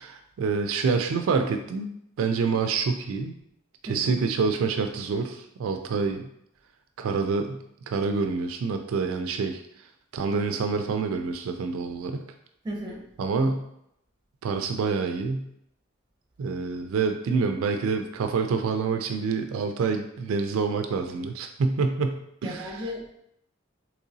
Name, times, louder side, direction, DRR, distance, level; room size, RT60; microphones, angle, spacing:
voice 1, 0.0-1.9 2.2-3.3 3.9-6.3 7.0-9.6 10.1-12.2 13.2-13.7 14.4-15.5 16.4-22.7, right 4 dB, 85° right, 6 dB, 0.3 m, -27 dB
voice 2, 3.9-4.2 12.6-13.0 22.4-23.2, equal, 20° right, -1 dB, 0.7 m, -35 dB
3.8 x 3.0 x 2.6 m, 0.77 s
head